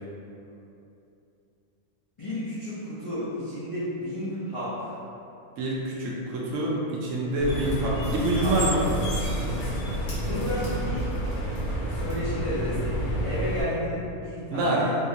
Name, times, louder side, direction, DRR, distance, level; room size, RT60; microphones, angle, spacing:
voice 1, 2.2-5.0 7.6-7.8 8.2-8.5 10.2-11.1 11.8-15.0, equal, 40° left, -13 dB, 0.4 m, -32 dB
voice 2, 5.6-8.8 14.5-14.8, right 1 dB, 70° right, -4 dB, 0.8 m, -26 dB
sound 1, 7.4-13.6, right 1 dB, 85° left, 1.3 m, -29 dB
3.5 x 2.3 x 2.7 m, 2.8 s
omnidirectional pair, 1.6 m